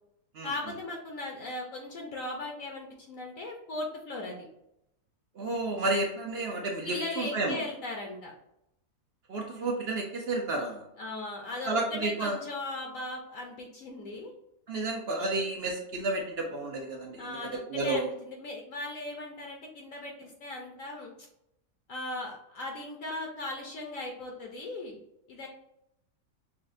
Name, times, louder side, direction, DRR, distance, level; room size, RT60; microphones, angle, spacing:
voice 1, 0.4-4.5 6.8-8.3 11.0-14.3 17.2-21.1 21.9-25.0 25.3-25.5, left 2 dB, 65° left, 0 dB, 1.0 m, -38 dB
voice 2, 5.4-7.6 9.3-10.8 11.7-12.4 14.7-17.4 17.7-18.1, right 2 dB, 65° right, 1 dB, 0.6 m, -31 dB
6.1 x 2.1 x 2.5 m, 0.81 s
omnidirectional pair, 1.7 m